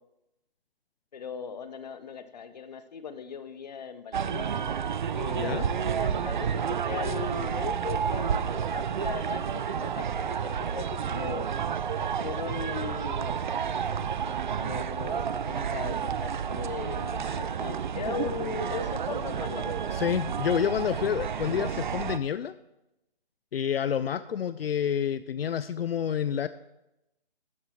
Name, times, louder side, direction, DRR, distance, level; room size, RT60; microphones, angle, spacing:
voice 1, 1.1-4.5 5.1-8.4 8.7-11.5 12.2-13.4 14.6-20.0, left 6 dB, 45° left, 11 dB, 0.8 m, -38 dB
sound 1, 4.1-22.2, right 7 dB, 50° right, 0.4 m, -30 dB
voice 2, 5.4-5.7 19.9-22.6 23.5-26.5, left 8 dB, 75° left, 14 dB, 0.5 m, -28 dB
12.5 x 7.9 x 3.2 m, 0.91 s
hypercardioid pair, 155°, 30 cm